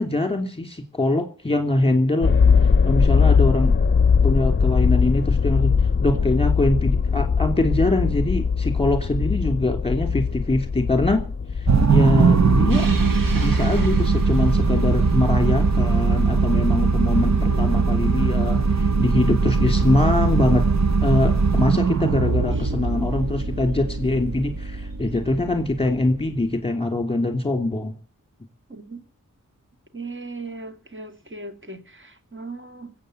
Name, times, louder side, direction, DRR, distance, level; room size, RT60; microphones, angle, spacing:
voice 1, 0.0-2.3 2.8-3.7 4.2-11.2 11.6-11.7 11.9-12.9 13.3-20.6 21.0-27.9, left 2 dB, 15° left, 2.9 m, -23 dB
sound 1, 2.2-16.4 17.0-17.1, left 5 dB, 35° left, 0.7 m, -21 dB
sound 2, 11.7-26.2, right 4 dB, 55° right, 1.0 m, -20 dB
sound 3, 12.7-19.4 19.8-19.9 21.2-21.3 23.4-23.5 24.9-25.2, right 3 dB, 75° right, 1.7 m, -41 dB
voice 2, 17.5-17.8 22.1-22.7 28.7-29.0 29.9-32.9, right 3 dB, 35° right, 2.4 m, -38 dB
20.5 x 8.4 x 8.0 m
wide cardioid pair, 75°, 33 cm